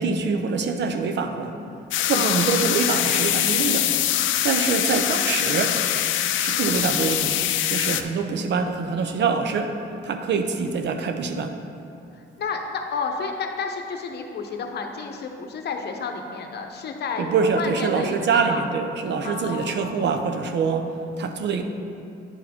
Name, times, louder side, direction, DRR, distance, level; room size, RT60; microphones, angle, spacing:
voice 1, 0.0-1.5 2.0-3.9 4.4-5.8 6.4-7.4 7.7-11.6 17.2-20.9 21.2-21.6, right 5 dB, 60° right, 6 dB, 0.6 m, -25 dB
sound 1, 1.9-8.0, left 11 dB, 80° left, 0.4 m, -23 dB
voice 2, 2.1-2.4 4.4-4.7 12.1-18.6 19.2-20.1, left 5 dB, 55° left, 4 dB, 0.8 m, -31 dB
10.0 x 4.1 x 4.3 m, 2.6 s
cardioid pair, 90°, 20 cm